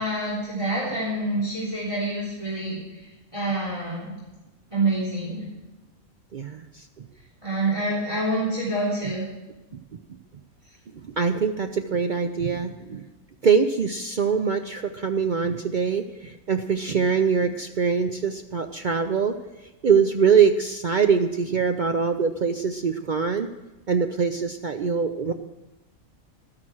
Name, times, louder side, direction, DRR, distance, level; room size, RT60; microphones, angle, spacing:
voice 1, 0.0-2.8 3.3-4.1 4.7-5.4 7.4-9.2, right 2 dB, 20° right, -6 dB, 3.6 m, -26 dB
voice 2, 6.3-6.6 11.2-13.0 13.4-19.3 19.8-23.5 23.9-25.3, right 6 dB, 60° right, 7 dB, 0.5 m, -23 dB
12.5 x 9.9 x 6.2 m, 1.1 s
omnidirectional pair, 1.5 m